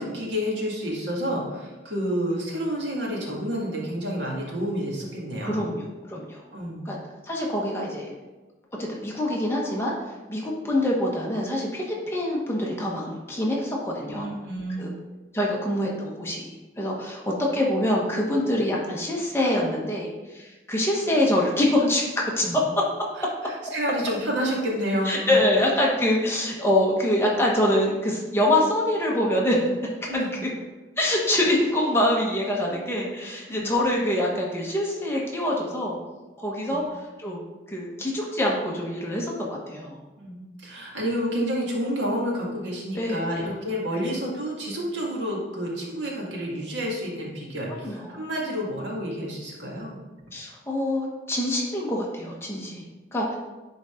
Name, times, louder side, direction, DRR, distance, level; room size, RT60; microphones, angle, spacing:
voice 1, 0.0-5.7 6.5-6.9 14.1-15.0 17.3-17.4 22.4-22.6 23.2-25.4 30.1-30.3 33.5-33.7 36.6-36.8 40.2-50.0, equal, 90° right, -3 dB, 1.9 m, -29 dB
voice 2, 5.4-6.4 6.8-7.0 7.2-8.1 8.8-14.3 14.8-14.9 15.3-22.0 22.4-22.6 25.0-29.8 31.0-36.0 36.4-40.0 43.0-43.4 47.8-48.1 50.3-52.9 53.1-53.4, left 1 dB, 15° left, -3 dB, 1.1 m, -25 dB
9.9 x 4.0 x 3.7 m, 1.2 s
head